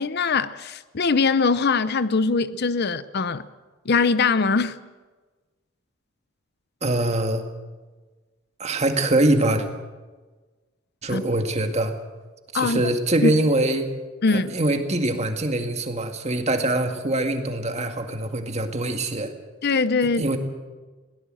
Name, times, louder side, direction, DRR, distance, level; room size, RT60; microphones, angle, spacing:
voice 1, 0.0-3.5 3.9-4.8 11.1-11.3 12.5-12.8 13.2-13.3 14.2-14.5 19.6-20.2, left 4 dB, 55° left, 0.7 m, -22 dB
voice 2, 6.8-7.4 8.6-9.7 11.0-11.9 12.5-13.9 14.3-19.3 20.2-20.4, right 1 dB, 35° right, 2.0 m, -23 dB
21.0 x 17.5 x 7.7 m
head